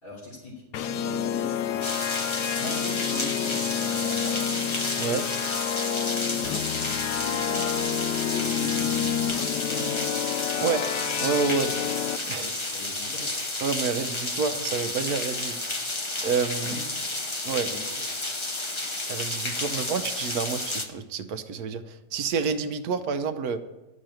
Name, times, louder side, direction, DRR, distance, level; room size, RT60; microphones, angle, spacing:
voice 1, 0.0-0.5 0.8-1.8 2.5-3.6 3.9-4.4 6.3-6.6 7.1-7.7 8.1-9.1 9.5-10.0 12.3-13.3 16.6-16.8 17.6-17.8, left 2 dB, 60° left, -8 dB, 3.8 m, -39 dB
sound 1, 0.7-12.2, left 9 dB, 85° left, 1.2 m, -29 dB
sound 2, 1.8-20.9, left 2 dB, 25° left, 0.7 m, -31 dB
voice 2, 11.2-11.7 12.3-12.5 13.6-15.6 16.2-16.8 17.4-17.7 19.1-23.6, right 5 dB, 70° right, 9 dB, 1.2 m, -28 dB
11.0 x 6.4 x 8.9 m, 1.0 s
omnidirectional pair, 1.7 m